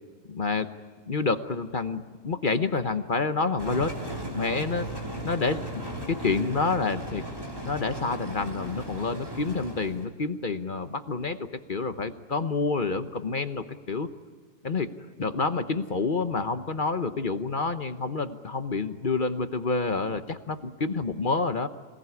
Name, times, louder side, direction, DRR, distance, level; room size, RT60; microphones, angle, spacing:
voice 1, 0.3-0.7 1.1-3.9 4.3-4.9 5.2-5.6 6.1-7.2 7.6-14.1 14.6-21.7, left 4 dB, 35° left, 9 dB, 1.0 m, -28 dB
sound 1, 3.6-10.0, right 1 dB, 15° right, 3.1 m, -36 dB
26.0 x 18.5 x 9.6 m, 1.5 s
omnidirectional pair, 1.6 m